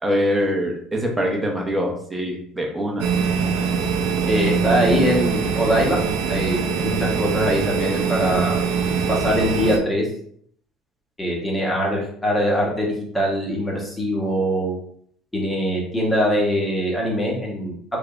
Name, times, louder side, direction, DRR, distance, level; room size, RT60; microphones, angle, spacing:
voice 1, 0.0-3.1, equal, 10° right, 0 dB, 0.9 m, -23 dB
sound 1, 3.0-9.8, right 6 dB, 80° right, 0.5 m, -23 dB
voice 2, 4.3-6.0 6.3-8.6 9.1-10.1 11.2-14.7 15.3-17.7, equal, 10° left, -2 dB, 1.2 m, -22 dB
3.4 x 3.3 x 2.5 m, 0.64 s
cardioid pair, 120°, 0 cm